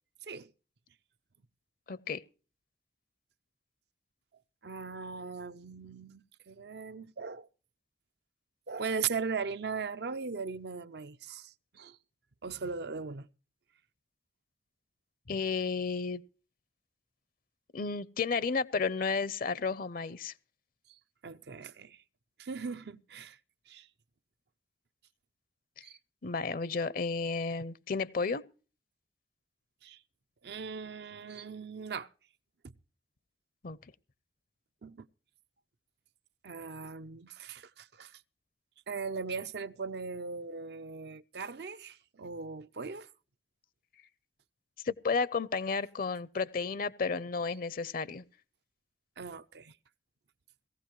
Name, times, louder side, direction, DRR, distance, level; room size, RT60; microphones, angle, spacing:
voice 1, 1.9-2.2 15.3-16.2 17.7-20.3 25.8-25.9 26.2-28.4 33.6-33.8 44.8-48.2, left 4 dB, 50° left, 0.6 m, -32 dB
voice 2, 4.6-7.5 8.7-12.0 12.4-13.3 21.2-22.0 22.4-23.4 23.7-23.9 25.8-26.0 29.8-30.0 30.4-32.1 32.6-32.7 34.8-35.1 36.4-38.1 38.9-43.1 49.2-49.7, right 5 dB, 65° right, 0.6 m, -39 dB
18.0 x 15.5 x 3.1 m
head